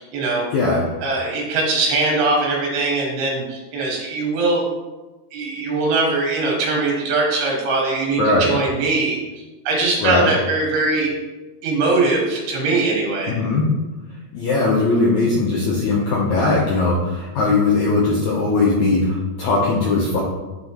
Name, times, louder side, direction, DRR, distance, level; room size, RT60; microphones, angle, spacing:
voice 1, 0.0-0.4 1.0-4.6 5.3-9.2 9.7-11.1 11.6-13.3, right 3 dB, 80° right, -2 dB, 3.7 m, -21 dB
voice 2, 0.5-0.9 8.2-8.5 10.0-10.3 13.3-13.7 14.3-20.2, left 3 dB, 75° left, -3 dB, 1.7 m, -19 dB
11.0 x 4.0 x 3.0 m, 1.2 s
omnidirectional pair, 4.4 m